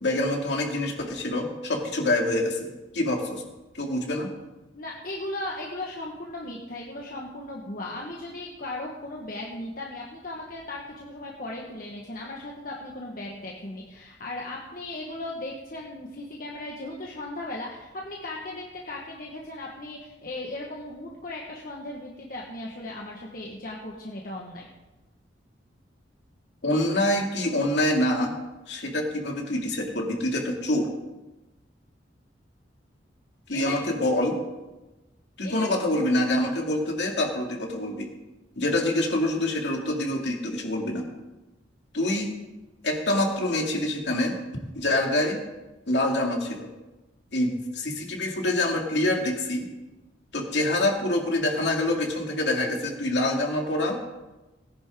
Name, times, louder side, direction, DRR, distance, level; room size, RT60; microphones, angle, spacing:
voice 1, 0.0-3.4 3.7-4.3 26.6-28.3 28.7-30.9 33.5-34.4 35.4-38.1 38.6-41.1 41.9-42.3 42.8-44.4 44.8-45.4 45.9-46.7 47.3-49.7 50.3-54.0, left 1 dB, 65° left, 1 dB, 2.5 m, -26 dB
voice 2, 4.7-24.6 33.5-33.8 35.4-35.7, left 2 dB, 50° left, -2 dB, 1.5 m, -37 dB
18.5 x 10.5 x 3.8 m, 1.1 s
head